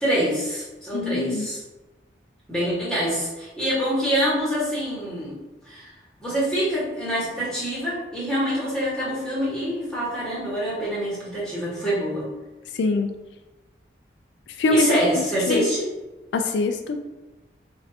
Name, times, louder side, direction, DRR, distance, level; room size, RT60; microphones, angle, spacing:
voice 1, 0.0-1.6 2.5-5.4 5.6-5.9 6.2-12.3 14.7-15.9, equal, 5° left, -8 dB, 1.4 m, -25 dB
voice 2, 0.9-1.5 12.8-13.1 14.6-14.9 15.5-15.7 16.3-17.0, left 3 dB, 75° left, 6 dB, 0.3 m, -23 dB
5.1 x 2.5 x 2.8 m, 1.1 s
head